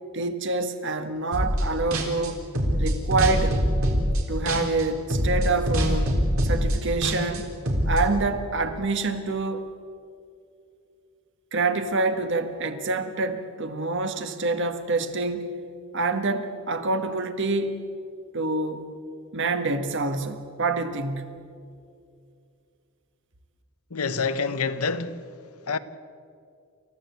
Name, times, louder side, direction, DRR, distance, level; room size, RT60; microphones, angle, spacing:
voice 1, 0.1-2.4 2.8-3.6 4.3-6.1 6.4-7.5 7.9-9.7 11.5-15.6 15.9-17.8 18.3-18.9 19.3-21.4, right 3 dB, 60° right, 1.6 m, -26 dB
sound 1, 1.3-1.6 1.9-4.8 5.1-8.0, equal, 80° right, 4.0 m, -23 dB
voice 2, 23.9-25.2 25.7-25.8, left 5 dB, 90° left, 1.0 m, -27 dB
29.0 x 14.5 x 8.2 m
head